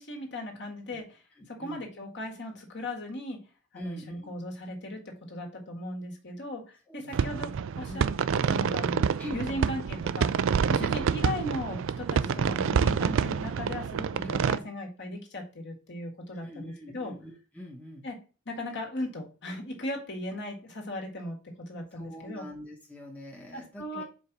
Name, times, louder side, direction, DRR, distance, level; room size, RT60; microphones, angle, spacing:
voice 1, 0.0-1.2 1.6-3.4 3.7-5.0 5.3-7.5 7.8-8.1 8.3-9.1 9.3-10.3 10.7-17.1 18.0-18.2 18.5-22.5 23.5-24.0, left 1 dB, 50° left, 1 dB, 1.7 m, -37 dB
voice 2, 1.4-1.9 3.7-4.3 6.9-7.3 7.9-8.1 9.2-9.7 10.8-11.2 12.2-12.7 14.2-14.7 16.3-18.1 21.9-24.0, left 1 dB, 5° left, 0 dB, 1.0 m, -44 dB
sound 1, 7.1-14.6, right 6 dB, 60° right, 0.3 m, -27 dB
5.0 x 4.1 x 5.9 m, 0.34 s
head